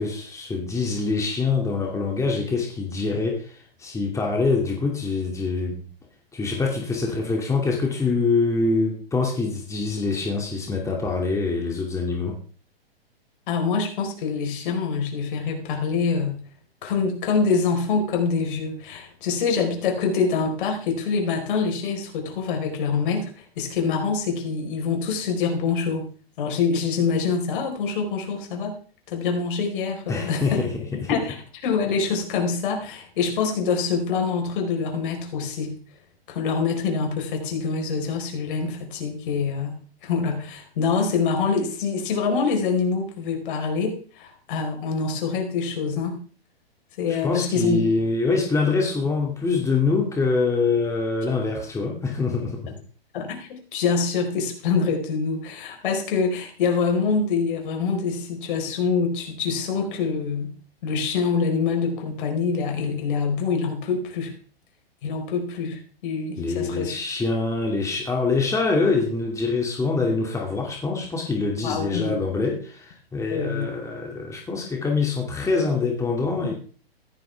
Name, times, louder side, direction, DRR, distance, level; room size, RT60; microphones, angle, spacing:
voice 1, 0.0-5.9 6.3-12.4 30.1-31.1 47.1-52.8 66.4-76.5, left 4 dB, 10° left, 0 dB, 2.6 m, -25 dB
voice 2, 13.5-16.4 16.8-23.3 23.6-26.0 26.4-28.7 29.1-30.6 31.1-31.4 31.6-35.8 36.3-46.2 47.0-47.8 53.1-60.5 60.8-64.3 65.0-67.0 71.6-72.2 73.3-73.7, left 5 dB, 55° left, 3 dB, 4.7 m, -25 dB
15.5 x 13.0 x 3.5 m, 0.41 s
hypercardioid pair, 120°, 31 cm